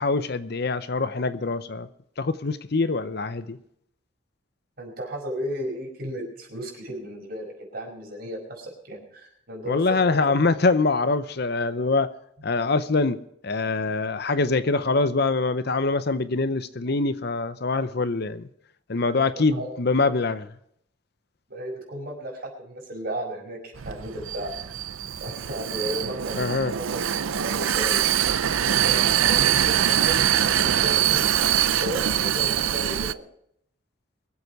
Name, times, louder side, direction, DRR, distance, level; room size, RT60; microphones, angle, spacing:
voice 1, 0.0-1.9 2.2-3.6 9.7-12.1 12.4-18.5 18.9-20.5 26.4-26.7, left 3 dB, 55° left, 0.7 m, -24 dB
voice 2, 4.8-10.4 19.1-19.7 21.5-24.5 25.2-26.5 26.7-28.0 28.7-33.2, right 1 dB, 50° right, 5.3 m, -35 dB
Vehicle, 23.8-33.1, right 10 dB, 85° right, 0.5 m, -23 dB
23.5 x 8.1 x 4.8 m
head